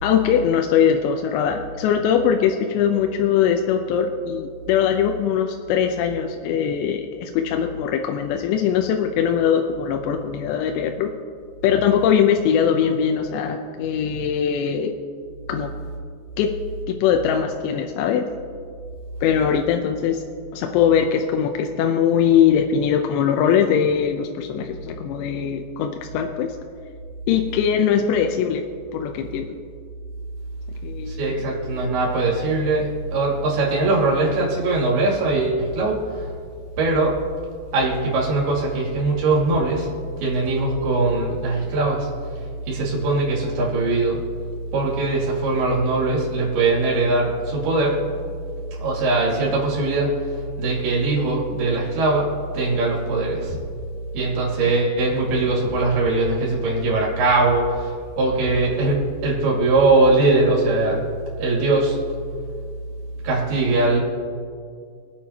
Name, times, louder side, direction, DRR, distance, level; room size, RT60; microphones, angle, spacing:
voice 1, 0.0-11.1 11.6-14.9 15.5-15.7 16.4-16.5 16.9-18.2 19.2-20.2 20.5-26.6 27.3-29.5 30.8-31.2, left 8 dB, 85° left, 4 dB, 2.8 m, -21 dB
voice 2, 31.1-36.3 36.8-37.2 37.7-39.9 40.2-42.1 42.7-44.3 44.7-48.1 48.8-50.1 50.6-52.3 52.5-53.6 54.1-61.0 61.4-62.0 63.2-64.0, right 2 dB, 65° right, -4 dB, 4.3 m, -21 dB
24.5 x 8.6 x 2.8 m, 2.2 s
omnidirectional pair, 5.0 m